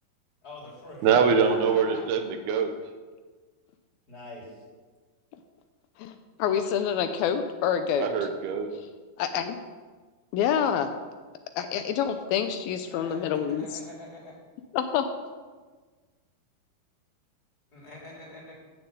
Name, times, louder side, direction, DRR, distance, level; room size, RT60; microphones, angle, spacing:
voice 1, 0.4-2.0 4.1-4.5 12.9-14.3 17.7-18.5, left 2 dB, 25° left, -4 dB, 3.6 m, -43 dB
voice 2, 1.0-2.7 7.9-8.7, right 6 dB, 85° right, 6 dB, 2.9 m, -23 dB
voice 3, 6.0-8.1 9.2-9.6 10.3-10.9 11.6-13.8 14.7-15.1, left 8 dB, 80° left, 8 dB, 2.5 m, -27 dB
12.5 x 6.6 x 7.8 m, 1.4 s
omnidirectional pair, 4.5 m